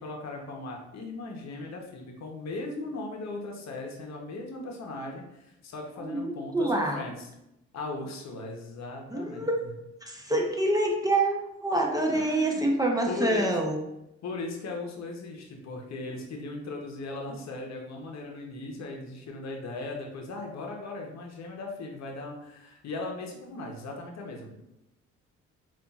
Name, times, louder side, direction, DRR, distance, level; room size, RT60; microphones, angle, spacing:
voice 1, 0.0-7.3 7.7-9.7 12.1-12.6 13.1-13.5 14.2-24.6, left 3 dB, 60° left, 1 dB, 0.8 m, -38 dB
voice 2, 6.0-7.0 9.1-9.6 10.0-13.8, right 1 dB, 10° right, 0 dB, 0.6 m, -26 dB
5.3 x 2.5 x 2.3 m, 0.87 s
cardioid pair, 90°, 30 cm